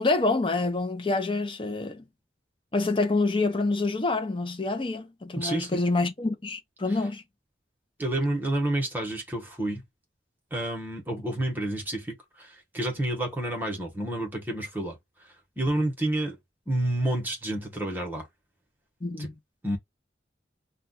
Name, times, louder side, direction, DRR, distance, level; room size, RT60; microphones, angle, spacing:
voice 1, 0.0-2.0 2.7-7.2 19.0-19.3, left 3 dB, 30° left, 0.6 m, -27 dB
voice 2, 5.4-5.8 8.0-9.8 10.5-15.0 15.6-16.4 16.7-18.3 19.2-19.3 19.6-19.8, right 1 dB, 10° right, 1.0 m, -29 dB
2.3 x 2.3 x 3.9 m
head